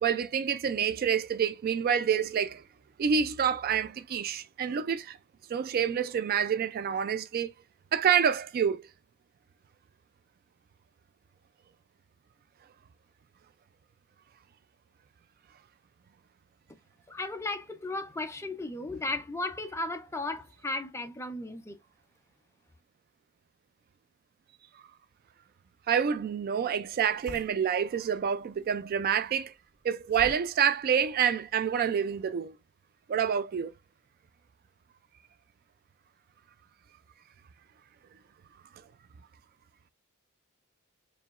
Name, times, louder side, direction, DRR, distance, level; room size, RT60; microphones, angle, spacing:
voice 1, 0.0-2.6 3.0-5.2 5.5-7.5 7.9-8.9 25.9-29.5 29.8-32.5 33.1-33.7, right 7 dB, 45° right, 0.3 m, -27 dB
voice 2, 17.1-21.8, left 2 dB, 15° left, 0.5 m, -35 dB
sound 1, 26.0-32.3, equal, 70° right, 2.2 m, -52 dB
4.6 x 3.0 x 2.4 m
head